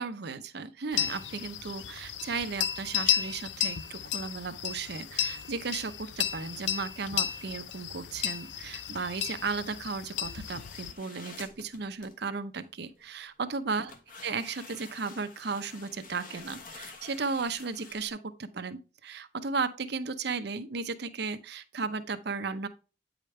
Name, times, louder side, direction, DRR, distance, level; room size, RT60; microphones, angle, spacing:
voice 1, 0.0-13.9 14.2-22.7, right 4 dB, 65° right, 0.7 m, -35 dB
sound 1, 0.9-10.9, left 10 dB, 85° left, 0.5 m, -33 dB
sound 2, 10.5-12.2 12.8-13.3 13.9-18.1, left 4 dB, 50° left, 1.3 m, -49 dB
8.8 x 5.1 x 3.2 m
head